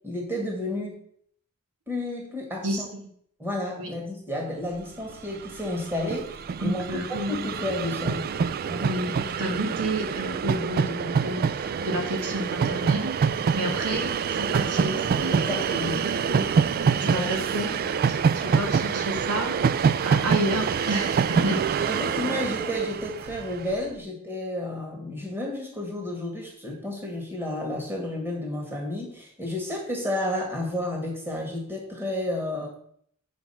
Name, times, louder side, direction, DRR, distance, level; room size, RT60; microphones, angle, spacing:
voice 1, 0.0-1.0 1.9-2.9 3.4-8.2 8.7-8.9 13.6-13.8 15.3-16.1 17.1-17.3 21.4-21.5 21.9-32.7, left 1 dB, 10° right, -1 dB, 2.0 m, -31 dB
voice 2, 2.6-3.1 3.8-3.9 6.6-7.3 8.8-13.2 13.5-16.4 16.8-17.8 18.1-21.9 22.3-22.4, right 1 dB, 80° right, 2 dB, 1.7 m, -31 dB
Train, 5.1-5.2 5.4-23.8, right 6 dB, 45° right, 0.3 m, -26 dB
6.3 x 5.2 x 5.7 m, 0.63 s
head